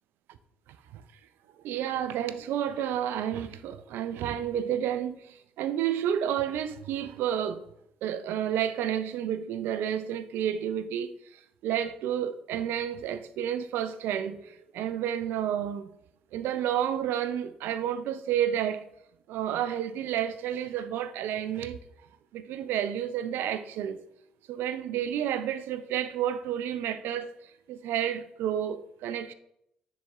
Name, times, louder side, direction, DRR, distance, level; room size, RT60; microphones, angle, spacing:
voice 1, 1.6-7.6 8.0-15.9 16.3-18.9 19.3-21.8 22.3-24.0 24.5-27.3 27.7-29.3, right 10 dB, 70° right, 0.4 m, -30 dB
10.0 x 4.2 x 2.3 m
hypercardioid pair, 45°, 4 cm